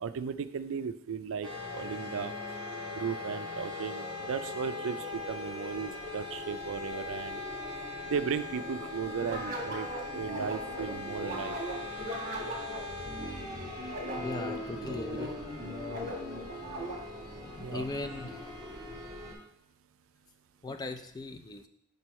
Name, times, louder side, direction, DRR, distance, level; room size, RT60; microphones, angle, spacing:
voice 1, 0.0-1.5 1.7-2.3 2.9-7.4 8.1-9.9 10.1-11.6 17.6-17.9, right 6 dB, 65° right, 12 dB, 0.4 m, -35 dB
sound 1, 1.4-19.3, left 2 dB, 20° right, 1.9 m, -40 dB
sound 2, 9.2-17.3, right 1 dB, 40° right, 1.5 m, -39 dB
voice 2, 14.2-15.3 17.7-18.4 20.6-21.7, left 3 dB, 20° left, 6 dB, 0.5 m, -38 dB
6.2 x 5.3 x 4.2 m, 0.71 s
head